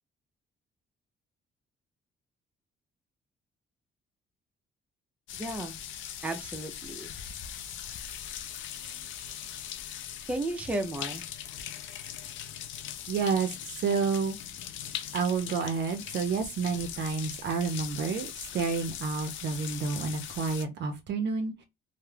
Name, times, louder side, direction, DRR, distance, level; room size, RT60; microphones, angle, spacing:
sound 1, 5.3-20.6, left 10 dB, 75° left, 0.4 m, -40 dB
voice 1, 5.4-5.8 6.2-7.1 10.3-11.2, right 2 dB, 5° right, 0.4 m, -33 dB
voice 2, 13.1-13.5 13.8-14.4 15.1-21.6, right 5 dB, 60° right, 0.5 m, -29 dB
2.2 x 2.0 x 3.1 m
cardioid pair, 90°, 20 cm